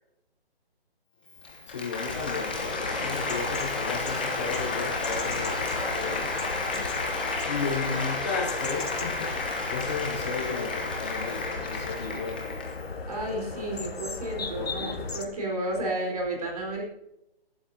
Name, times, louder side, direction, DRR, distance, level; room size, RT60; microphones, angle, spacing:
Applause, 1.3-12.9, left 3 dB, 10° left, 0.9 m, -32 dB
voice 1, 1.7-6.3 6.7-12.4 14.5-15.0, left 4 dB, 30° left, -4 dB, 4.4 m, -34 dB
sound 1, 2.1-15.2, left 4 dB, 70° left, 2.5 m, -37 dB
voice 2, 13.1-16.8, right 1 dB, 35° right, -1 dB, 4.7 m, -32 dB
23.0 x 12.0 x 2.9 m, 0.89 s
hypercardioid pair, 175°, 31 cm